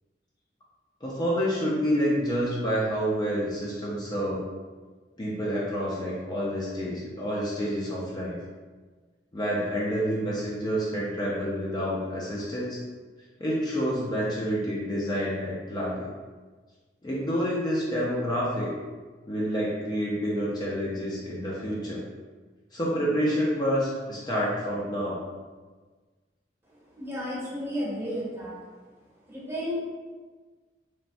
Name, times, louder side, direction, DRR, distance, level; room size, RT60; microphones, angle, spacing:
voice 1, 1.0-4.4 5.2-8.4 9.3-12.8 13.4-16.1 17.0-18.7 19.3-22.0 22.7-25.2, equal, 25° left, -6 dB, 0.4 m, -28 dB
voice 2, 26.9-28.5 29.3-29.7, equal, 15° right, -7 dB, 0.7 m, -32 dB
3.1 x 2.0 x 2.6 m, 1.4 s
head